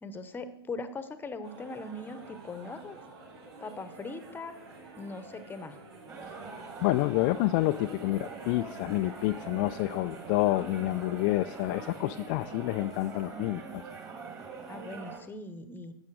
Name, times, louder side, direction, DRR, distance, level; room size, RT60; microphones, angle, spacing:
voice 1, 0.0-3.0 3.6-4.5 5.0-5.8 14.7-15.9, left 3 dB, 15° left, 11 dB, 1.0 m, -40 dB
sound 1, 1.4-11.9, right 2 dB, 60° right, 4.4 m, -49 dB
sound 2, 6.1-15.2, right 5 dB, 25° right, 2.3 m, -43 dB
voice 2, 6.8-13.8, left 18 dB, 40° left, 8 dB, 0.4 m, -28 dB
12.5 x 8.4 x 4.8 m, 0.84 s
hypercardioid pair, 105°, 14 cm